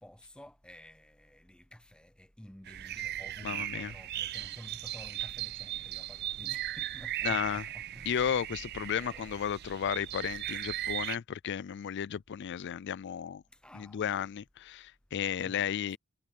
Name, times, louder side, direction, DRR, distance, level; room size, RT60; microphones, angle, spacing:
voice 1, 0.0-8.3 8.8-9.4 13.5-14.0 15.4-16.0, equal, 5° left, 0.8 m, -52 dB
sound 1, 2.7-11.2, right 13 dB, 50° right, 0.4 m, -38 dB
voice 2, 3.4-3.9 7.2-7.6 8.1-13.4 13.7-16.0, left 8 dB, 55° left, 0.4 m, -33 dB
head